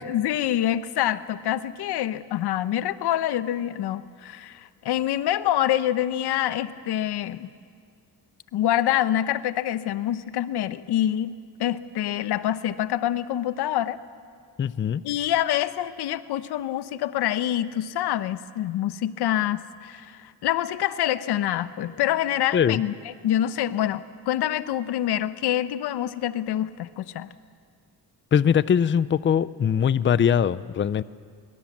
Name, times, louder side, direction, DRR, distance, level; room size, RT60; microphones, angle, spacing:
voice 1, 0.0-7.5 8.5-14.0 15.0-27.3, left 12 dB, 90° left, 14 dB, 0.9 m, -26 dB
voice 2, 14.6-15.0 22.5-22.8 28.3-31.0, left 8 dB, 30° left, 17 dB, 0.5 m, -21 dB
24.0 x 23.5 x 7.4 m, 2.1 s
cardioid pair, 95°, 38 cm